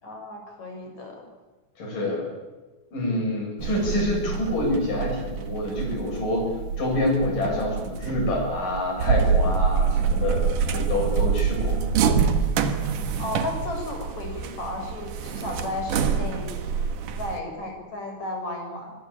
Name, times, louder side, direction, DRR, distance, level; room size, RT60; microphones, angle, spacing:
voice 1, 0.0-1.2 13.2-16.5 17.2-18.9, left 2 dB, 55° left, 2 dB, 7.6 m, -34 dB
voice 2, 1.8-2.3 2.9-11.8, left 1 dB, 80° left, 0 dB, 9.5 m, -27 dB
sound 1, 3.6-17.4, right 6 dB, 75° right, 3.1 m, -26 dB
25.5 x 22.0 x 8.9 m, 1.2 s
omnidirectional pair, 3.8 m